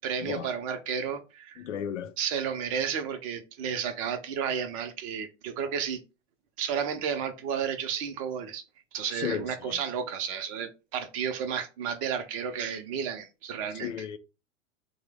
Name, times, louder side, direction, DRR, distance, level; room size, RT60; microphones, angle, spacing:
voice 1, 0.0-1.7 2.2-6.0 6.6-8.6 8.9-14.1, right 7 dB, 30° right, 0.4 m, -32 dB
voice 2, 1.6-2.1 9.1-9.8 13.8-14.2, left 8 dB, 75° left, 0.5 m, -34 dB
3.1 x 2.0 x 3.3 m
figure-of-eight pair, 95°, 37 cm